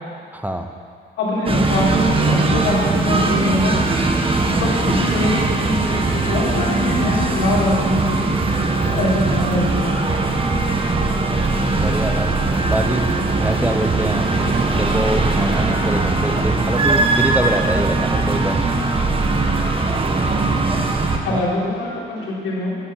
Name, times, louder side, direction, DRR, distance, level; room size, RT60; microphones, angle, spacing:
voice 1, 0.3-0.7 11.8-12.3 12.7-13.1 13.4-14.3 14.8-18.6 21.3-21.5, right 1 dB, 10° right, 5 dB, 0.9 m, -24 dB
voice 2, 1.2-1.9 2.2-3.8 4.4-8.3 8.8-10.0 21.2-22.8, left 1 dB, 90° left, -8 dB, 3.8 m, -23 dB
sound 1, 1.5-21.2, right 3 dB, 25° right, 1.4 m, -20 dB
11.0 x 11.0 x 5.9 m, 2.1 s
cardioid pair, 90°, 20 cm